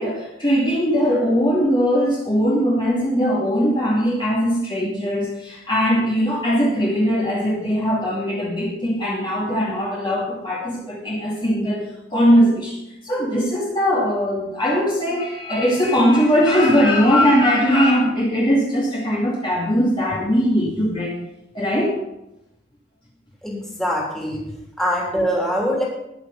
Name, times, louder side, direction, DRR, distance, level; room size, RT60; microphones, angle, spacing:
voice 1, 0.0-12.8 13.0-21.1 21.5-22.0, equal, 25° left, -5 dB, 2.6 m, -20 dB
voice 2, 23.4-24.4 24.8-25.8, equal, ahead, -3 dB, 3.3 m, -23 dB
20.0 x 6.7 x 5.4 m, 0.87 s
head